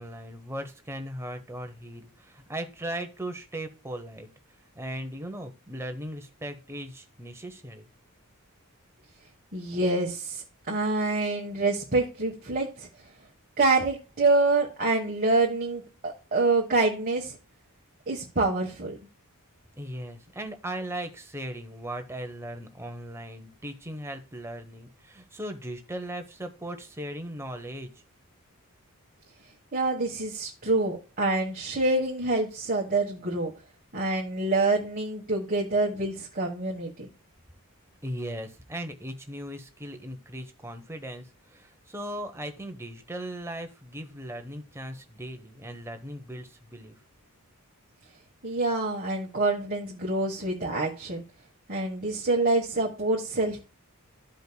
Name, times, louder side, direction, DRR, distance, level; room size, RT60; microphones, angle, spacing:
voice 1, 0.0-4.3 4.7-7.9 19.8-27.9 38.0-47.0, right 1 dB, 10° right, 6 dB, 0.9 m, -38 dB
voice 2, 9.5-12.9 13.6-17.4 18.1-19.0 29.7-33.5 33.9-37.1 48.4-51.2 51.7-53.6, right 2 dB, 40° right, -1 dB, 1.2 m, -26 dB
13.5 x 5.1 x 2.2 m, 0.32 s
head